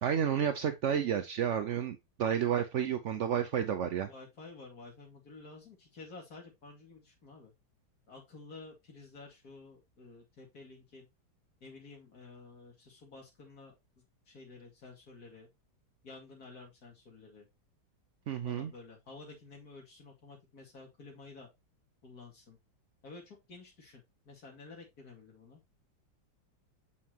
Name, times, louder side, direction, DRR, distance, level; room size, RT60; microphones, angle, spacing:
voice 1, 0.0-4.1 18.3-18.7, right 8 dB, 75° right, 0.6 m, -31 dB
voice 2, 4.1-7.5 8.1-11.1 11.6-13.7 14.3-15.5 16.0-17.5 18.4-21.5 22.0-22.6 23.0-25.6, left 3 dB, 55° left, 2.9 m, -51 dB
7.4 x 5.6 x 2.9 m
omnidirectional pair, 2.0 m